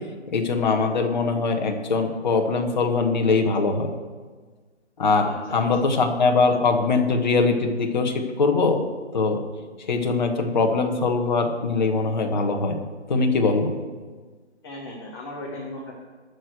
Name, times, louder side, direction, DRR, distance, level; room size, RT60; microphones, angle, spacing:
voice 1, 0.3-3.9 5.0-8.8 9.1-9.4 9.9-12.8 13.1-13.7, left 4 dB, 40° left, 3 dB, 1.5 m, -22 dB
voice 2, 5.2-5.9 14.6-15.9, left 1 dB, 20° left, -3 dB, 1.4 m, -37 dB
11.5 x 6.7 x 8.0 m, 1.4 s
figure-of-eight pair, 160°, 35 cm